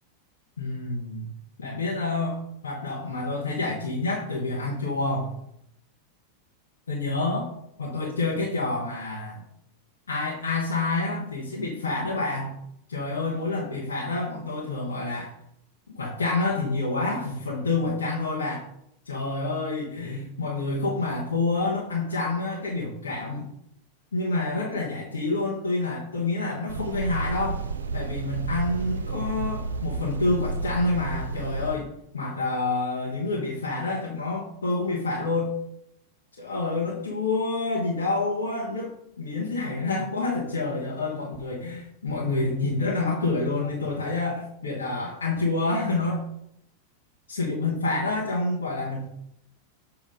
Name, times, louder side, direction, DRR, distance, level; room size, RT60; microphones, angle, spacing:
voice 1, 0.6-1.3 1.6-5.4 6.9-7.5 7.8-9.4 10.1-12.6 12.9-15.3 16.0-18.7 19.0-23.5 24.1-27.6 27.9-35.5 36.4-46.2 47.3-49.0, left 3 dB, 70° left, -6 dB, 1.3 m, -28 dB
sound 1, 26.7-31.8, right 3 dB, 65° right, 0.5 m, -31 dB
7.6 x 2.9 x 5.2 m, 0.77 s
figure-of-eight pair, 90°, 0 cm